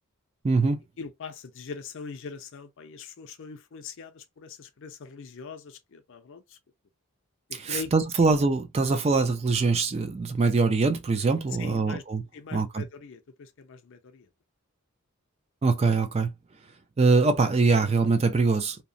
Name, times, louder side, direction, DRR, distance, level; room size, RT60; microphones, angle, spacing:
voice 1, 0.4-0.8 7.5-12.2 12.5-12.8 15.6-16.3 17.0-18.8, right 4 dB, 30° right, 0.3 m, -23 dB
voice 2, 1.0-6.6 7.7-7.9 8.2-8.3 11.6-12.0 12.3-14.3, left 5 dB, 55° left, 0.5 m, -41 dB
2.8 x 2.1 x 2.5 m
head